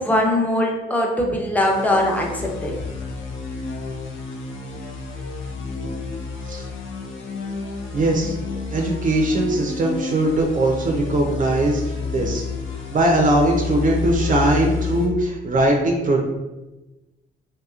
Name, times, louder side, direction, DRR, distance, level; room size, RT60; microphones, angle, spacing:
voice 1, 0.0-2.7, left 1 dB, 10° left, 0 dB, 0.6 m, -21 dB
sound 1, 1.7-15.1, left 4 dB, 80° left, 0.6 m, -30 dB
voice 2, 7.9-8.4 8.7-12.4 12.9-16.2, right 1 dB, 40° right, 1 dB, 0.5 m, -20 dB
3.2 x 2.8 x 2.3 m, 1.1 s
cardioid pair, 90°, 20 cm